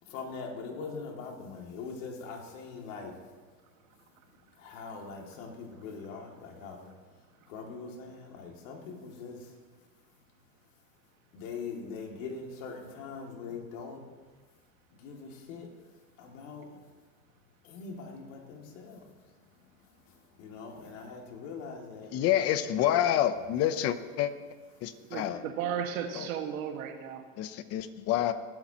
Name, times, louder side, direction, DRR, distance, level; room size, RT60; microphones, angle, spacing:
voice 1, 0.0-14.1 14.9-22.2 24.8-24.9, left 4 dB, 70° left, 1 dB, 2.5 m, -43 dB
voice 2, 22.1-24.3 24.8-25.4 26.2-26.3 27.4-28.3, left 11 dB, 35° left, 12 dB, 0.7 m, -28 dB
voice 3, 25.1-27.2, right 8 dB, 85° right, 5 dB, 1.7 m, -34 dB
20.0 x 12.0 x 2.9 m, 1.4 s
supercardioid pair, 140°, 40 cm